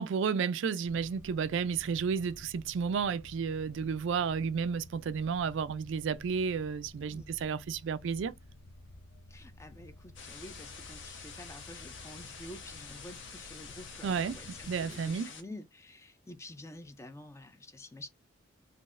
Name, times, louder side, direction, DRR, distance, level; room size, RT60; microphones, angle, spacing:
voice 1, 0.0-8.3 14.0-15.3, right 6 dB, 60° right, 0.3 m, -32 dB
sound 1, 0.8-15.2, left 2 dB, 90° left, 0.6 m, -53 dB
voice 2, 9.3-18.1, left 1 dB, 15° left, 0.4 m, -49 dB
sound 2, 10.2-15.4, left 5 dB, 60° left, 0.9 m, -47 dB
3.8 x 2.8 x 2.5 m
head